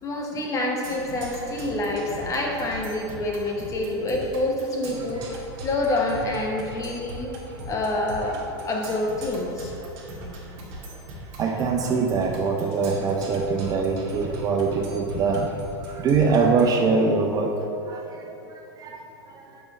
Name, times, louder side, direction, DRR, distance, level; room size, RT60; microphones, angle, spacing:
voice 1, 0.0-7.4 7.7-9.7, left 2 dB, 25° left, 0 dB, 1.0 m, -27 dB
Percussion, 0.8-16.8, right 1 dB, 55° right, 1.4 m, -39 dB
voice 2, 11.4-15.5 15.9-17.5 17.9-18.3 18.8-19.0, right 4 dB, 30° right, 1 dB, 0.5 m, -23 dB
6.8 x 5.2 x 3.1 m, 2.8 s
hypercardioid pair, 105°, 13 cm